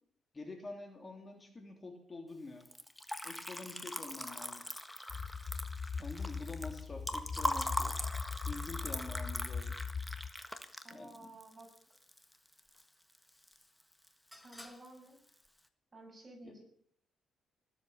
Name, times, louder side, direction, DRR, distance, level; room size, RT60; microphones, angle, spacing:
voice 1, 0.3-2.6 3.2-4.6 6.0-8.0 8.4-9.7 10.9-11.3 16.4-16.5, left 3 dB, 30° left, 3 dB, 3.0 m, -47 dB
Liquid, 2.6-12.8 13.1-13.8 14.1-14.9, left 1 dB, 5° left, 1.5 m, -41 dB
sound 1, 5.1-10.3, left 5 dB, 45° left, 1.0 m, -40 dB
voice 2, 10.8-11.7 14.3-15.2 15.9-16.6, right 2 dB, 30° right, 1 dB, 7.1 m, -53 dB
19.5 x 7.9 x 7.2 m, 0.64 s
cardioid pair, 90°, 0 cm